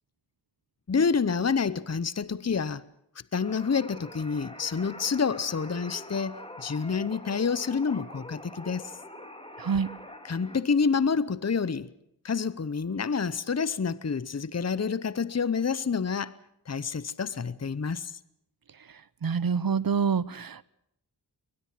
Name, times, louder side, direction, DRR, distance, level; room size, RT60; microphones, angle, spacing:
voice 1, 0.9-2.8 3.3-8.9 10.2-11.9 12.2-16.3 16.7-18.2, left 5 dB, 40° left, 0.9 m, -28 dB
sound 1, 3.4-10.6, left 1 dB, 15° left, 3.4 m, -45 dB
voice 2, 19.2-20.6, right 6 dB, 60° right, 0.9 m, -26 dB
22.5 x 20.0 x 7.6 m
wide cardioid pair, 55°, 40 cm